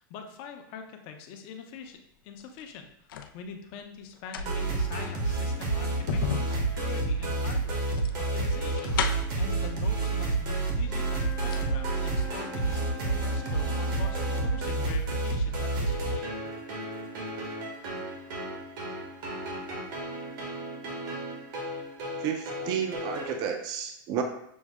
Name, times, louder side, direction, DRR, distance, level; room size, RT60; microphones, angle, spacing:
voice 1, 0.0-3.1 3.3-8.0 8.3-8.9 9.4-16.2 16.7-16.8, left 6 dB, 50° left, 4 dB, 0.7 m, -44 dB
sound 1, 2.4-3.4 4.1-9.5 10.4-10.5 10.9-11.7 12.0-12.1, left 8 dB, 85° left, 0.4 m, -36 dB
sound 2, 4.4-23.3, right 3 dB, 75° right, 1.3 m, -30 dB
Wind instrument woodwind instrument, 10.8-14.8, left 1 dB, 15° left, 0.8 m, -42 dB
voice 2, 22.2-24.2, right 8 dB, 40° right, 5 dB, 0.5 m, -31 dB
6.2 x 2.1 x 3.5 m, 0.75 s
supercardioid pair, 130°, 11 cm